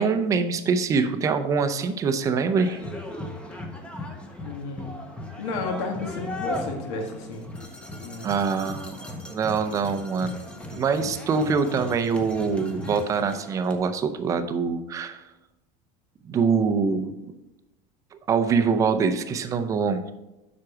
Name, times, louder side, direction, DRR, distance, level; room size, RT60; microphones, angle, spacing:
voice 1, 0.0-2.8 8.2-9.0 9.3-10.4 10.7-15.2 16.3-17.1 18.3-20.1, right 5 dB, 20° right, 9 dB, 0.5 m, -24 dB
sound 1, 2.6-13.8, left 1 dB, 5° left, 0.8 m, -37 dB
voice 2, 4.4-5.0 5.4-7.5 8.0-8.4, left 3 dB, 75° left, 4 dB, 1.6 m, -32 dB
7.7 x 6.0 x 4.8 m, 0.98 s
cardioid pair, 175°, 15 cm